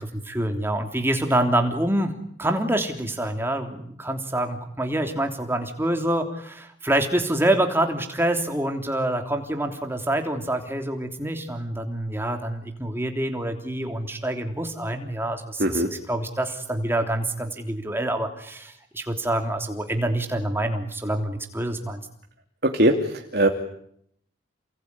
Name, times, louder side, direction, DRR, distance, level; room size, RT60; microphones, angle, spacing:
voice 1, 0.0-2.1 2.4-15.8 16.1-22.0, right 1 dB, 10° right, 5 dB, 3.2 m, -26 dB
voice 2, 15.6-15.9 22.6-23.5, right 1 dB, 55° right, 3 dB, 2.8 m, -21 dB
29.5 x 20.5 x 9.8 m, 0.70 s
head